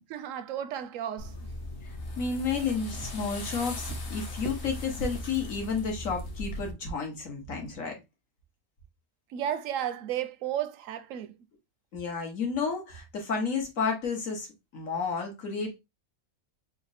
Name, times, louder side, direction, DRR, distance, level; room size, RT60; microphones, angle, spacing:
voice 1, 0.1-1.3 9.3-11.3, right 10 dB, 80° right, 0.9 m, -33 dB
sound 1, 1.2-6.7, left 2 dB, 50° left, 1.2 m, -38 dB
voice 2, 1.8-8.0 11.9-14.5 14.7-15.8, left 5 dB, 80° left, 1.7 m, -31 dB
4.2 x 2.1 x 4.0 m
omnidirectional pair, 1.4 m